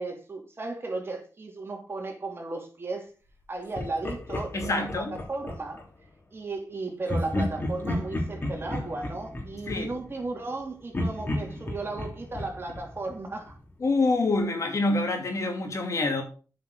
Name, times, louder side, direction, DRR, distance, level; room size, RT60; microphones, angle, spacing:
voice 1, 0.0-3.1 3.5-5.8 6.3-13.6, right 3 dB, 40° right, 2.7 m, -35 dB
Laughter, 3.7-5.9 7.1-10.6 10.9-13.7, left 1 dB, 35° left, 3.3 m, -33 dB
voice 2, 4.5-5.2 9.7-9.9 13.8-16.2, left 2 dB, 55° left, 2.5 m, -26 dB
8.5 x 5.8 x 4.9 m
cardioid pair, 80°, 6 cm